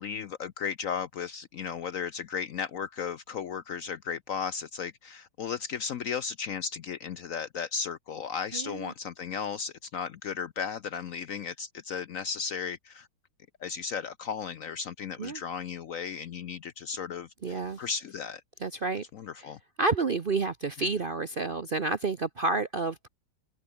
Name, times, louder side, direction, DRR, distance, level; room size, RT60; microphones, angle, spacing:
voice 1, 0.0-13.1 13.6-18.4 19.1-19.6 20.8-20.9, left 6 dB, 75° left, 0.7 m, -35 dB
voice 2, 8.5-8.9 15.2-15.4 17.4-17.8 18.6-19.0 19.8-23.1, right 3 dB, 75° right, 0.5 m, -29 dB
open air
omnidirectional pair, 2.3 m